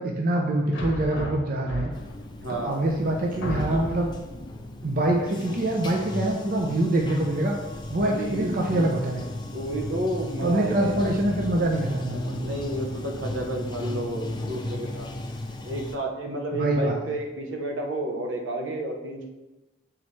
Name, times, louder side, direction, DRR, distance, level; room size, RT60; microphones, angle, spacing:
voice 1, 0.0-1.9 2.5-4.1 4.8-7.6 7.9-9.3 10.4-12.5 16.5-17.0, right 1 dB, 50° right, 0 dB, 0.6 m, -25 dB
sound 1, 0.7-2.2 2.9-3.0 3.4-4.3, equal, 75° left, 1.0 m, -33 dB
Bathtub (filling or washing), 1.9-16.0, left 1 dB, 25° left, 0.6 m, -35 dB
voice 2, 2.4-2.7 8.0-8.6 9.5-11.1 12.3-15.1 15.6-19.3, right 1 dB, 80° right, 2 dB, 1.0 m, -31 dB
7.8 x 4.1 x 3.2 m, 1.1 s
head